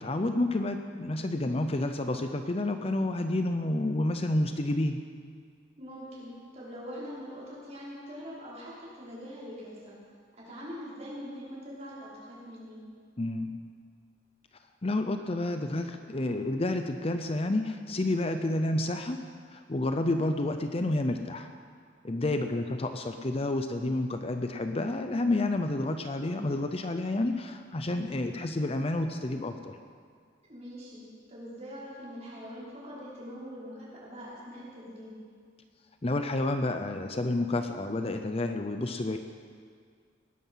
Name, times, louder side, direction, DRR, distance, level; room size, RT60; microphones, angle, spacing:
voice 1, 0.0-5.0 13.2-13.6 14.8-19.2 19.5-21.5 22.0-29.8 36.0-39.2, left 2 dB, 35° left, 7 dB, 0.7 m, -30 dB
voice 2, 5.8-10.0 10.4-12.8 22.2-22.6 30.5-35.1, equal, 35° right, -8 dB, 5.5 m, -43 dB
19.5 x 11.5 x 5.7 m, 2.1 s
head